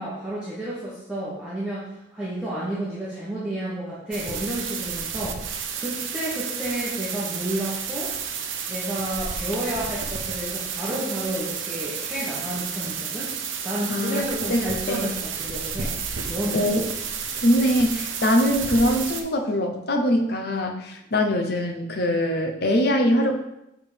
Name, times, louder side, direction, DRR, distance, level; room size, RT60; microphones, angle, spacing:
voice 1, 0.0-8.1 8.7-13.3 13.6-15.9 16.3-16.7, right 1 dB, 5° right, -10 dB, 1.3 m, -31 dB
sound 1, 4.1-19.2, right 6 dB, 75° right, 0.8 m, -31 dB
voice 2, 13.9-15.1 16.5-16.9 17.4-23.3, equal, 50° left, 3 dB, 0.9 m, -23 dB
6.9 x 3.7 x 5.1 m, 0.85 s
head